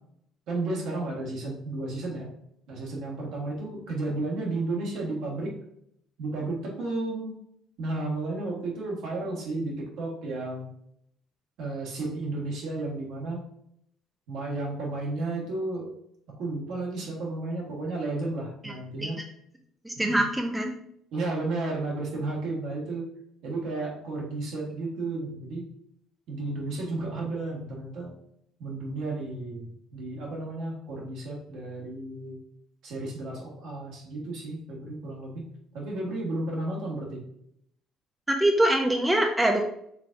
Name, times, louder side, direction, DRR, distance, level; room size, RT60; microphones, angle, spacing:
voice 1, 0.5-2.3 2.7-5.5 6.2-7.4 7.8-10.7 11.6-13.4 14.3-15.9 16.4-19.2 19.9-20.3 21.1-23.1 23.4-25.7 26.3-28.1 28.6-32.4 32.8-35.5 35.7-37.2, right 2 dB, 65° right, -2 dB, 1.5 m, -33 dB
voice 2, 19.8-20.7 38.3-39.6, right 1 dB, 10° right, 3 dB, 0.6 m, -24 dB
4.9 x 3.4 x 2.5 m, 0.71 s
hypercardioid pair, 65°, 0 cm